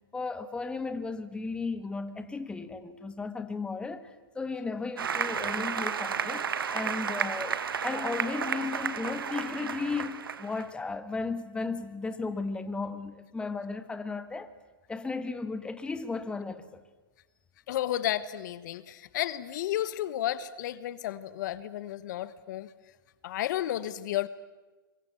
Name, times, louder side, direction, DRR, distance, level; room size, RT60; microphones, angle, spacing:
voice 1, 0.1-14.5 14.9-16.8, left 4 dB, 10° left, 1.5 m, -35 dB
Applause, 5.0-10.6, right 7 dB, 85° right, 1.6 m, -32 dB
voice 2, 17.7-22.7 23.2-24.3, left 12 dB, 55° left, 1.2 m, -32 dB
25.5 x 22.5 x 8.3 m
hypercardioid pair, 130°, 12 cm